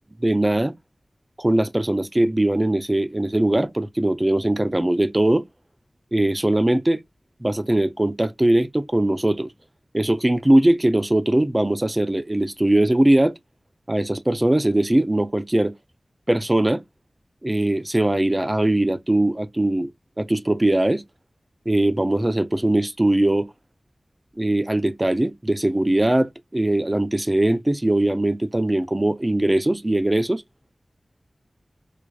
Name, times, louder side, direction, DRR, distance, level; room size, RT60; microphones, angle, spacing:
voice 1, 0.2-0.7 1.4-5.4 6.1-7.0 7.4-9.5 9.9-13.3 13.9-15.7 16.3-16.8 17.4-19.9 20.2-21.0 21.7-23.5 24.4-30.4, right 1 dB, 25° right, 0.5 m, -20 dB
4.6 x 2.4 x 2.4 m
wide cardioid pair, 50°, 0 cm